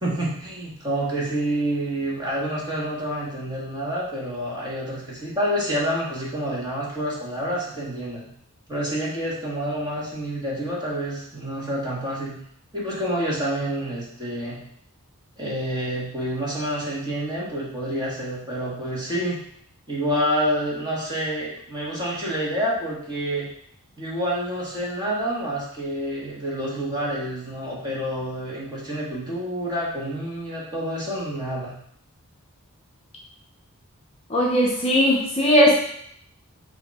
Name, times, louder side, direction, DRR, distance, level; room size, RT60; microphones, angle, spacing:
voice 1, 0.0-8.3 8.7-12.4 12.7-14.6 15.4-19.4 19.9-23.5 24.0-31.8, equal, 20° right, -5 dB, 1.7 m, -28 dB
voice 2, 34.3-35.7, equal, 25° left, -2 dB, 0.7 m, -18 dB
6.8 x 2.9 x 4.8 m, 0.69 s
head